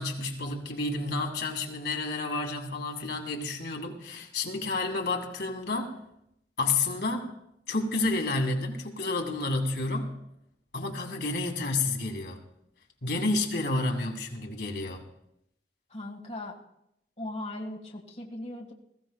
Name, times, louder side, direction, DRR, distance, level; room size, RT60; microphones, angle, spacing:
voice 1, 0.0-5.9 6.6-7.3 7.7-10.2 10.7-12.4 13.0-15.0, left 3 dB, 70° left, 2 dB, 2.0 m, -30 dB
voice 2, 15.9-16.6 17.2-18.7, left 1 dB, 40° left, -1 dB, 1.7 m, -38 dB
21.5 x 15.0 x 2.3 m, 0.79 s
head